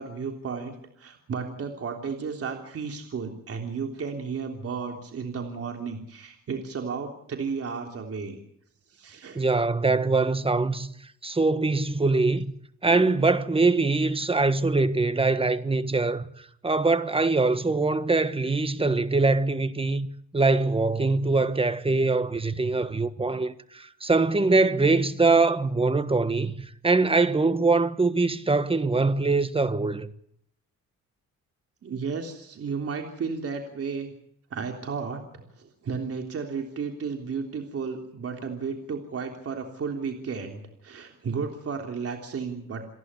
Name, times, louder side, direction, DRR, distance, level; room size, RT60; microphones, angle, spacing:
voice 1, 0.0-8.4 8.9-9.4 31.8-34.2 34.5-42.8, right 5 dB, 50° right, 3.4 m, -33 dB
voice 2, 9.3-10.9 11.2-12.5 12.8-20.1 20.3-30.1, right 3 dB, 20° right, 1.4 m, -23 dB
28.0 x 11.0 x 9.8 m
cardioid pair, 90°, 30 cm